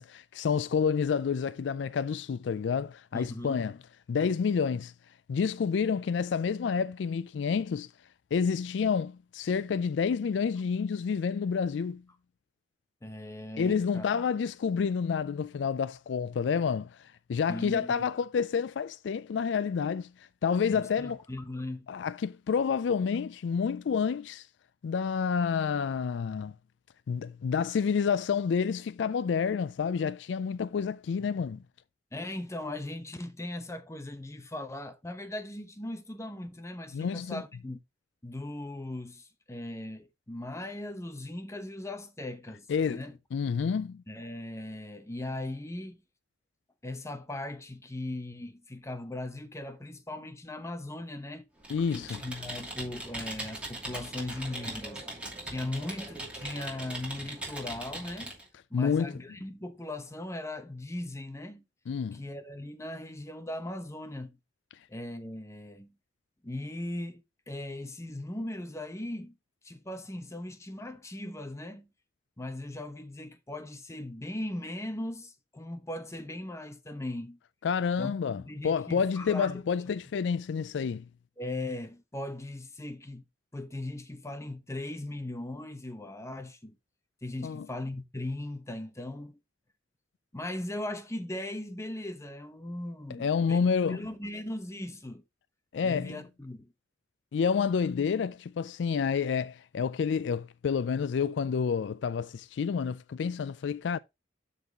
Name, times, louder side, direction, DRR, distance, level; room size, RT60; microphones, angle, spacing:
voice 1, 0.0-3.8 4.1-4.9 5.3-7.9 8.3-12.0 13.6-16.9 17.3-20.1 20.4-21.2 21.9-24.4 24.8-26.5 27.1-31.6 36.9-37.4 42.7-43.0 43.3-44.0 51.7-52.2 58.7-59.2 61.9-62.2 77.6-81.0 87.4-87.7 93.1-94.1 95.7-96.2 97.3-104.0, left 6 dB, 75° left, 0.4 m, -29 dB
voice 2, 3.1-3.6 13.0-14.1 17.5-18.1 20.7-21.9 31.2-31.3 32.1-37.8 38.2-43.2 44.1-46.0 46.8-51.5 51.9-55.1 55.4-58.4 58.7-61.7 62.1-64.4 64.9-66.0 66.4-69.4 69.6-71.9 72.4-77.4 78.0-79.6 81.4-83.2 83.5-86.8 87.2-89.4 90.3-95.2 95.8-96.7, left 1 dB, 15° left, 0.9 m, -39 dB
Computer keyboard, 51.6-58.4, right 1 dB, 5° right, 2.6 m, -40 dB
12.5 x 4.1 x 2.9 m
head